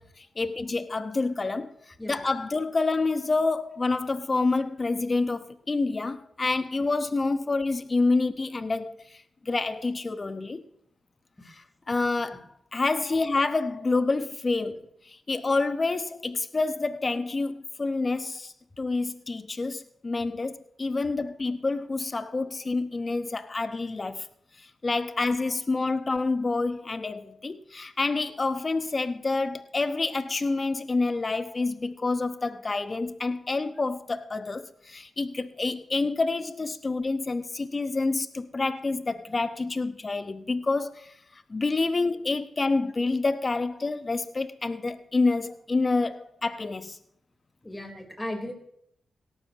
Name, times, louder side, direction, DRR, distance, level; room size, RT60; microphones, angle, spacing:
voice 1, 0.0-10.6 11.9-12.5 12.7-24.3 24.6-47.0, left 3 dB, 40° left, 1.1 m, -28 dB
voice 2, 2.0-2.3 6.7-6.9 13.0-13.2 14.7-14.8 20.4-20.5 21.0-21.1 25.1-25.2 45.5-45.6 47.6-48.5, left 1 dB, 15° left, 4.1 m, -38 dB
17.5 x 12.5 x 3.0 m
supercardioid pair, 45°, 0 cm